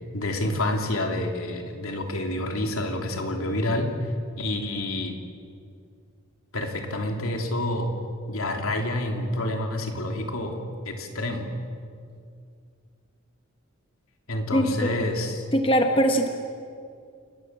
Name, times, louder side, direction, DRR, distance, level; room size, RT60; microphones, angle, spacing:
voice 1, 0.1-3.9 4.4-5.1 6.5-7.9 8.3-10.6 10.8-11.5 14.3-15.5, left 1 dB, 75° left, 3 dB, 3.3 m, -28 dB
voice 2, 14.5-14.9 15.5-16.3, equal, 25° left, 4 dB, 1.3 m, -21 dB
28.5 x 19.5 x 7.6 m, 2.3 s
head